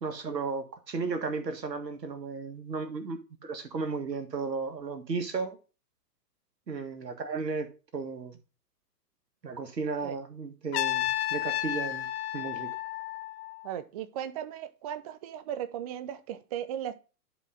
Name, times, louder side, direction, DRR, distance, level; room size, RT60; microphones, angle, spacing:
voice 1, 0.0-5.6 6.7-7.7 7.9-8.4 9.4-12.7, right 4 dB, 85° right, 1.8 m, -34 dB
Trumpet, 10.7-13.7, left 13 dB, 40° left, 0.7 m, -32 dB
voice 2, 13.6-16.9, right 10 dB, 25° right, 0.4 m, -36 dB
11.0 x 4.9 x 3.6 m
hypercardioid pair, 115°, 48 cm